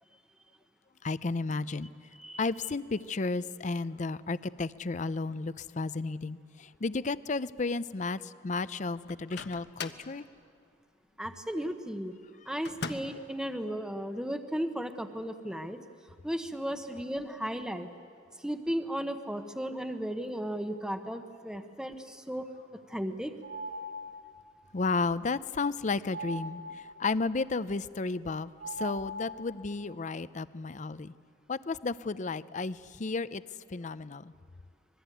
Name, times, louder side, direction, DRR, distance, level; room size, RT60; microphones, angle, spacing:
voice 1, 1.0-1.9 2.4-10.3 24.7-31.1 31.5-33.4 33.7-34.3, left 3 dB, 45° left, 16 dB, 0.6 m, -33 dB
Microwave oven, 9.1-10.1 12.6-13.3, left 4 dB, 65° left, 1.2 m, -40 dB
voice 2, 11.2-12.1 12.5-15.8 16.2-17.9 18.4-22.4 22.9-23.3, equal, 5° right, 7 dB, 1.0 m, -35 dB
sound 1, 23.4-24.4 26.1-27.1 28.6-29.7, right 1 dB, 70° right, 5.9 m, -40 dB
25.5 x 21.0 x 9.2 m, 2.4 s
head